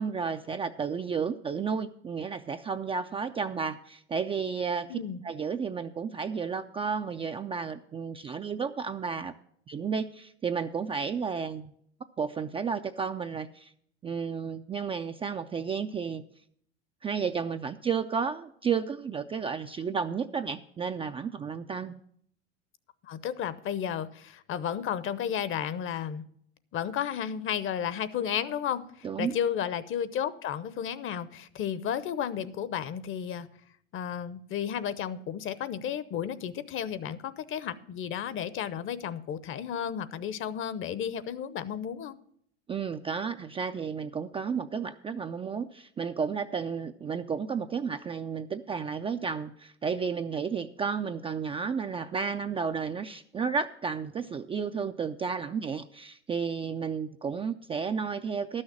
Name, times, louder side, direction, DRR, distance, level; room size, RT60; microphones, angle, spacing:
voice 1, 0.0-5.0 5.2-9.3 9.7-11.7 12.2-13.7 14.0-16.2 17.0-22.0 29.0-29.4 42.7-58.6, right 6 dB, 15° right, 7 dB, 0.3 m, -32 dB
voice 2, 4.9-5.2 23.0-26.2 26.7-33.5 33.9-42.2, left 9 dB, 40° left, 16 dB, 0.8 m, -33 dB
12.0 x 6.4 x 7.2 m, 0.66 s
hypercardioid pair, 90°, 33 cm